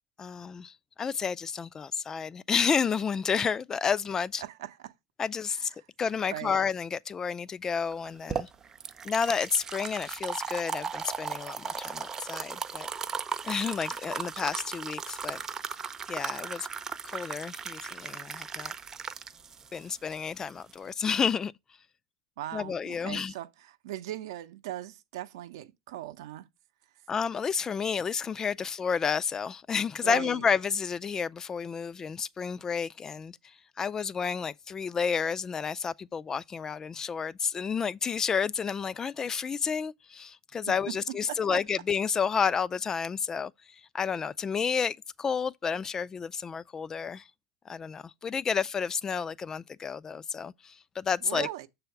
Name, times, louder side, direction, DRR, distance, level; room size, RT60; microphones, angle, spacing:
voice 1, 0.2-4.4 5.2-5.7 6.0-8.5 9.0-12.9 13.4-15.4 16.1-16.7 17.0-18.7 19.7-21.5 22.5-23.3 27.1-47.3 47.7-51.5, left 6 dB, 25° left, 0.4 m, -31 dB
voice 2, 4.4-4.9 6.3-6.6 22.4-26.5 30.0-30.4 41.3-41.6 51.2-51.7, right 13 dB, 70° right, 0.7 m, -39 dB
sound 1, 7.9-20.9, right 6 dB, 25° right, 0.6 m, -37 dB
6.9 x 3.4 x 5.8 m
hypercardioid pair, 95°, 2 cm